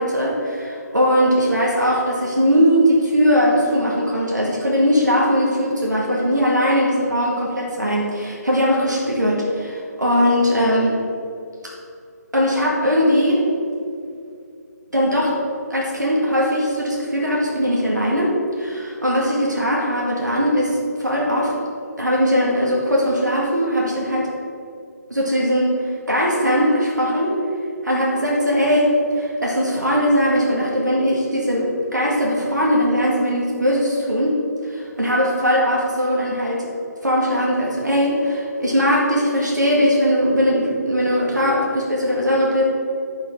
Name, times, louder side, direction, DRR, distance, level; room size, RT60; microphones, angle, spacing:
voice 1, 0.0-11.0 11.6-11.7 12.3-13.5 14.9-15.4 15.7-21.6 22.0-24.3 25.1-27.4 27.8-36.7 37.0-42.6, equal, 80° right, -3 dB, 2.2 m, -20 dB
11.5 x 5.9 x 4.8 m, 2.4 s
figure-of-eight pair, 150°, 9 cm